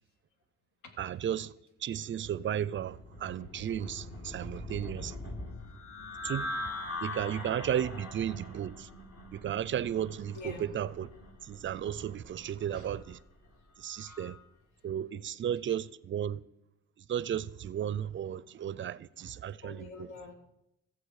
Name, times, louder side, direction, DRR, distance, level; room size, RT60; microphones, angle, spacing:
voice 1, 1.0-1.5 1.8-5.2 6.2-6.5 7.0-8.9 9.3-11.1 11.4-13.2 13.8-14.4 14.8-16.4 17.1-20.1, right 10 dB, 40° right, 0.4 m, -34 dB
sound 1, 2.6-14.4, left 2 dB, 50° left, 2.2 m, -43 dB
voice 2, 4.1-4.5 5.1-5.4 6.8-7.1 10.3-10.7 12.7-12.9 14.0-14.2 15.7-15.8 19.6-20.3, left 4 dB, 80° left, 1.7 m, -48 dB
15.0 x 7.2 x 4.8 m
cardioid pair, 90°, 30 cm